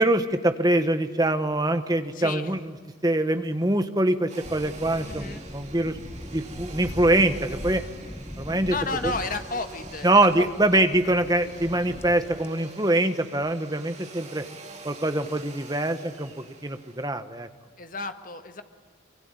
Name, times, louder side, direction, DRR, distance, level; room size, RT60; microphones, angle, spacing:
voice 1, 0.0-2.7 3.0-6.0 6.3-7.8 8.4-8.7 9.0-9.1 10.0-14.4 14.8-17.5, right 1 dB, 20° right, 9 dB, 1.2 m, -24 dB
voice 2, 2.1-2.5 5.0-5.4 8.6-10.4 10.7-10.8 17.8-18.6, left 3 dB, 45° left, 7 dB, 1.6 m, -32 dB
Domestic sounds home sounds, 4.3-17.1, right 3 dB, 35° right, 3.3 m, -46 dB
sound 1, 4.4-12.5, left 1 dB, 15° left, 0.8 m, -40 dB
24.5 x 24.0 x 9.8 m, 1.5 s
head